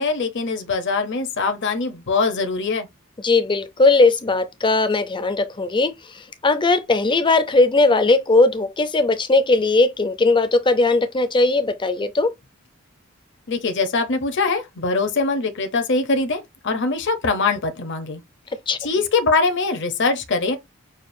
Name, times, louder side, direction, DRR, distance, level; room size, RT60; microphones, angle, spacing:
voice 1, 0.0-2.9 13.5-18.2 18.8-20.6, left 3 dB, 55° left, 0.8 m, -22 dB
voice 2, 3.2-12.3 18.7-18.8, left 3 dB, 25° left, 0.5 m, -18 dB
6.4 x 2.4 x 2.6 m
head